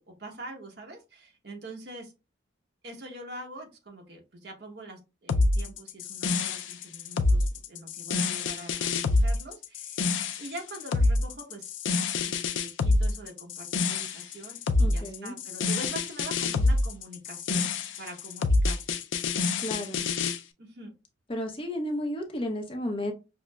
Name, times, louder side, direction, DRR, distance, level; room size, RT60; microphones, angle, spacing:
voice 1, 0.0-2.1 2.8-17.7 18.0-18.8 20.6-20.9, right 1 dB, 60° right, 0.9 m, -44 dB
sound 1, 5.3-20.4, left 3 dB, 85° left, 0.4 m, -26 dB
voice 2, 14.8-15.4 19.6-20.1 21.3-23.1, left 1 dB, 30° left, 0.6 m, -33 dB
5.8 x 2.0 x 2.2 m
head